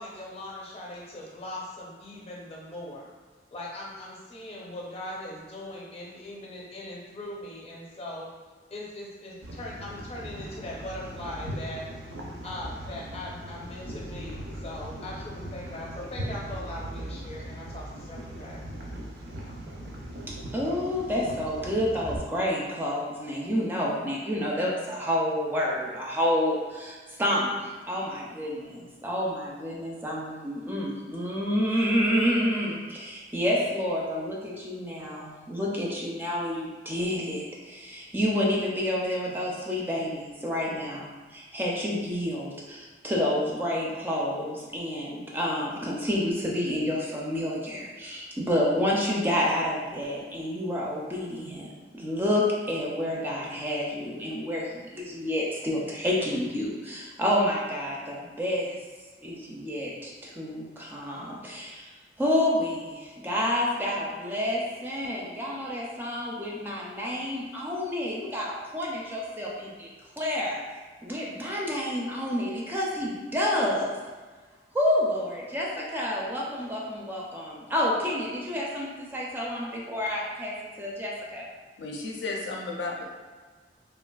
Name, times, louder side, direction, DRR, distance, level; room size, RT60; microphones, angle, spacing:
voice 1, 0.0-3.1 3.5-8.3 8.7-11.9 12.4-18.7, left 1 dB, 35° left, -4 dB, 0.6 m, -40 dB
sound 1, 9.4-22.2, right 1 dB, 70° right, 0.5 m, -39 dB
voice 2, 20.5-51.7 51.9-58.8 59.2-61.9 62.2-69.9 70.2-70.6 71.0-74.0 74.7-81.5, left 1 dB, 10° right, -4 dB, 0.4 m, -29 dB
voice 3, 81.8-83.0, left 3 dB, 80° left, 0 dB, 0.5 m, -33 dB
3.3 x 2.4 x 2.3 m, 1.4 s
head